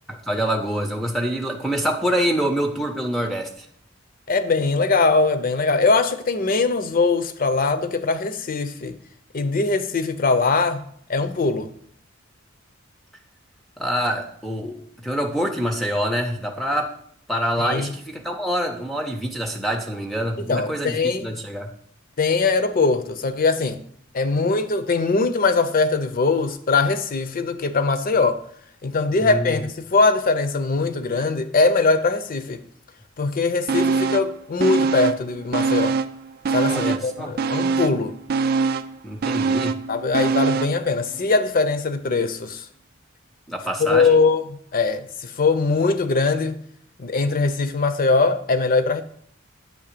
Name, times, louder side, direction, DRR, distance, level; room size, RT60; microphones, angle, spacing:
voice 1, 0.1-3.5 13.8-16.9 17.3-21.7 29.2-29.6 36.7-37.3 39.0-39.8 43.5-44.2, equal, ahead, 0.5 m, -26 dB
voice 2, 4.3-9.0 9.3-10.8 11.1-11.7 17.6-17.9 20.5-21.3 22.2-23.8 24.1-28.4 28.8-32.6 33.2-36.0 36.5-38.1 39.9-42.7 43.8-46.6 47.0-49.0, left 3 dB, 45° left, 0.6 m, -21 dB
sound 1, 33.7-34.3 34.6-36.2 36.4-40.8 41.2-41.3, right 4 dB, 50° right, 0.4 m, -23 dB
8.8 x 3.2 x 6.6 m
head